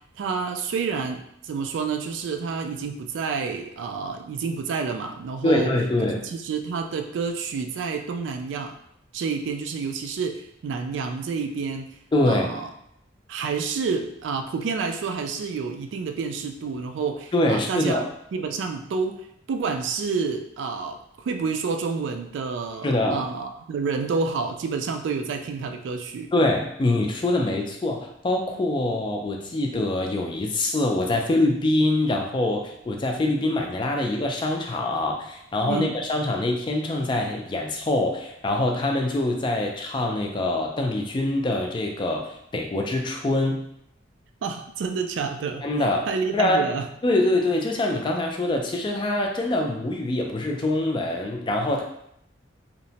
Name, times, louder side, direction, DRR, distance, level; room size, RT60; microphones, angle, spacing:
voice 1, 0.2-5.7 6.2-8.8 9.1-11.9 12.3-12.7 13.3-21.0 21.2-26.3 35.7-36.0 44.4-45.6 46.1-46.8, right 5 dB, 75° right, 6 dB, 0.3 m, -29 dB
voice 2, 5.4-6.2 12.1-12.5 17.3-18.0 22.8-23.2 26.3-43.6 45.6-46.1 46.3-46.6 47.0-51.8, left 2 dB, 25° left, 1 dB, 0.3 m, -24 dB
2.8 x 2.1 x 2.7 m, 0.74 s
head